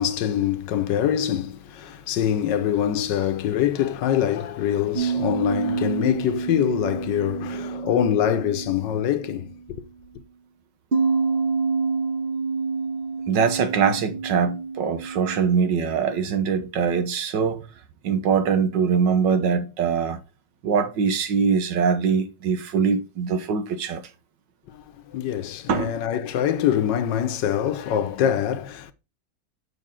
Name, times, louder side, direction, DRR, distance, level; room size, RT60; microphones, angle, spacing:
voice 1, 0.0-9.9 24.7-28.9, left 10 dB, 80° left, 1.4 m, -24 dB
sound 1, 4.9-9.5 10.9-16.2, right 5 dB, 35° right, 1.1 m, -28 dB
voice 2, 13.3-17.6 18.0-20.2 20.6-24.0 25.7-25.9, right 6 dB, 80° right, 1.7 m, -22 dB
6.8 x 5.6 x 3.7 m
omnidirectional pair, 1.9 m